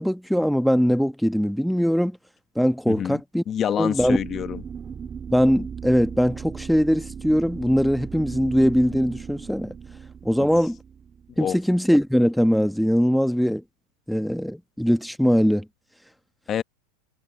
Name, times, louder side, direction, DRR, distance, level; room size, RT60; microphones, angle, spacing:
voice 1, 0.0-2.2 2.6-3.4 3.8-4.2 5.3-9.7 10.2-10.8 11.4-13.6 14.1-15.6, equal, ahead, 1.1 m, -21 dB
voice 2, 2.9-3.2 3.5-4.6 10.4-10.5 11.4-11.6 16.5-16.6, left 9 dB, 30° left, 1.1 m, -27 dB
sound 1, 4.0-11.9, right 7 dB, 25° right, 3.8 m, -37 dB
supercardioid pair, 125°, 0 cm